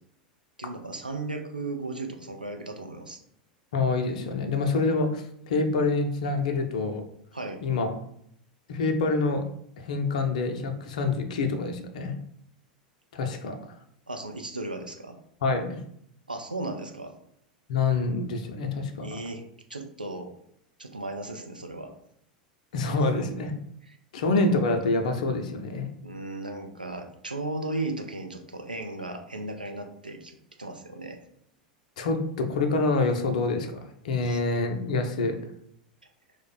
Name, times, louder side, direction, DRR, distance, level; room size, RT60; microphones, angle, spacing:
voice 1, 0.6-3.2 7.3-7.6 14.1-15.2 16.3-17.1 19.0-19.4 19.7-20.3 20.8-21.9 23.9-24.0 26.0-31.2 34.2-34.4, right 2 dB, 85° right, 4 dB, 0.4 m, -36 dB
voice 2, 3.7-7.0 7.6-7.9 8.7-9.5 9.8-12.1 13.1-13.6 15.4-15.8 17.7-19.1 22.7-23.5 24.1-25.9 32.0-35.4, left 3 dB, 60° left, 6 dB, 0.5 m, -26 dB
3.0 x 2.1 x 3.9 m, 0.71 s
figure-of-eight pair, 85°, 5 cm